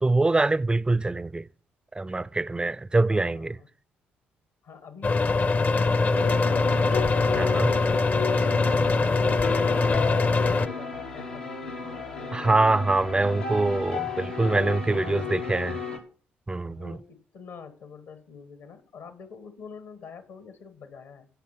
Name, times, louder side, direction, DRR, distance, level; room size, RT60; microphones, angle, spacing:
voice 1, 0.0-1.5 1.9-3.6 7.3-7.7 12.3-15.8 16.5-17.0, right 2 dB, 15° right, 0.4 m, -24 dB
voice 2, 3.1-3.7 4.6-12.6 13.1-13.8 15.0-16.0 16.6-21.3, left 6 dB, 65° left, 1.6 m, -46 dB
sound 1, 5.0-10.7, left 3 dB, 35° left, 0.7 m, -23 dB
sound 2, 6.1-16.0, left 5 dB, 85° left, 1.3 m, -34 dB
13.5 x 5.8 x 5.9 m
figure-of-eight pair, 45°, 5 cm